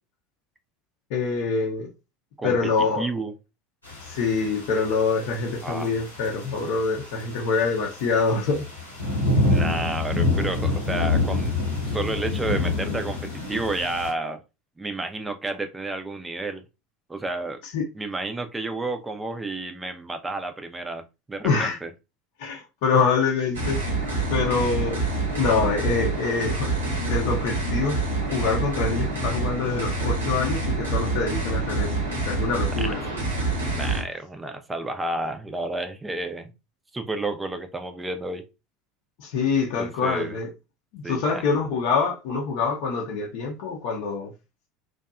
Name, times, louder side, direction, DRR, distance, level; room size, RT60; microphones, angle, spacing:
voice 1, 1.1-1.9 2.4-3.1 4.0-8.7 17.7-17.8 21.4-21.8 22.4-23.8 24.3-25.0 25.4-26.7 27.1-28.0 28.3-31.9 32.3-33.0 39.2-40.5 40.9-44.3, left 4 dB, 55° left, 0.5 m, -25 dB
voice 2, 2.4-2.7 3.0-3.3 5.6-5.9 9.5-11.5 11.9-14.4 14.8-16.6 17.1-17.6 17.9-21.0 21.3-21.9 32.8-33.0 33.7-36.5 36.9-38.4 39.8-40.4 41.0-41.4, right 2 dB, 15° right, 0.4 m, -31 dB
sound 1, 3.8-14.1, left 2 dB, 90° left, 0.9 m, -27 dB
sound 2, 23.5-34.0, right 3 dB, 75° right, 0.9 m, -26 dB
2.6 x 2.2 x 2.3 m
figure-of-eight pair, 75°, 0 cm